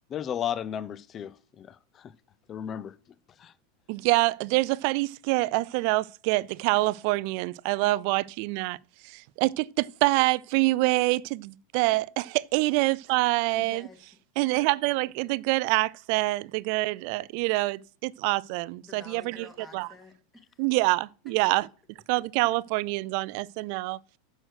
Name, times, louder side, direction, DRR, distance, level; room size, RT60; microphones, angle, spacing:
voice 1, 0.1-2.1 2.5-2.9 3.4-3.5, left 9 dB, 30° left, 0.4 m, -34 dB
voice 2, 3.9-8.8 9.0-12.2 12.5-13.8 14.4-19.3 19.7-19.9 20.6-21.7 22.1-24.0, right 22 dB, 60° right, 0.3 m, -26 dB
voice 3, 13.5-14.2 18.8-20.7 21.4-21.5, left 2 dB, 15° left, 2.0 m, -50 dB
6.3 x 6.3 x 6.3 m
supercardioid pair, 125°, 0 cm